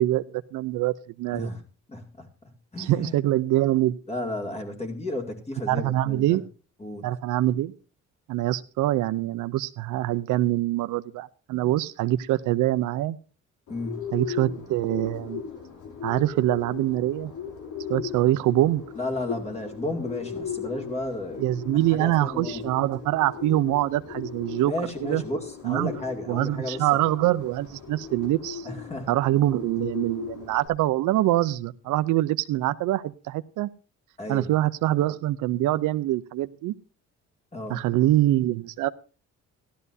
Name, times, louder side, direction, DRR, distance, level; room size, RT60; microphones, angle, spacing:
voice 1, 0.0-1.5 2.8-4.0 5.7-6.4 7.0-7.7 8.3-13.2 14.1-15.4 16.0-17.3 17.9-18.8 21.4-24.7 25.0-25.2 25.6-25.9 26.3-28.7 29.1-33.7 34.3-36.7 37.7-38.9, right 15 dB, 85° right, 0.6 m, -24 dB
voice 2, 1.3-1.6 1.9-2.3 2.7-3.2 4.1-6.4 6.8-7.0 13.7-14.0 19.0-21.5 21.7-22.7 24.6-26.9 28.6-29.1 34.2-34.5 37.5-37.8, left 1 dB, 20° left, 2.4 m, -33 dB
Bird, 13.7-30.7, left 7 dB, 80° left, 3.0 m, -38 dB
15.5 x 12.5 x 2.7 m
cardioid pair, 90°, 30 cm